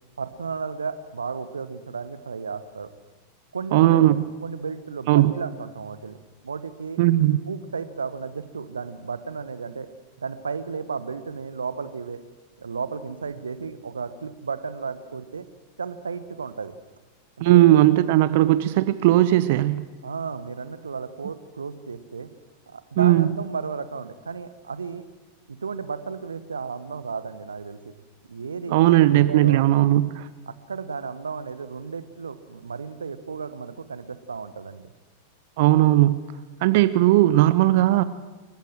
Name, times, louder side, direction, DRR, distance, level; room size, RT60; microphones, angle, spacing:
voice 1, 0.2-2.9 3.5-6.2 6.4-7.0 7.5-9.9 10.2-12.2 12.6-15.4 15.8-16.7 17.4-17.7 20.0-22.3 22.7-25.0 25.5-27.8 28.3-29.6 30.5-34.8, right 5 dB, 75° right, 13 dB, 1.3 m, -33 dB
voice 2, 3.7-4.1 5.1-5.3 7.0-7.4 17.4-19.9 23.0-23.3 28.7-30.3 35.6-36.2 36.6-38.0, right 15 dB, 50° right, 15 dB, 0.8 m, -17 dB
27.5 x 14.5 x 7.8 m, 1.2 s
figure-of-eight pair, 90°, 0 cm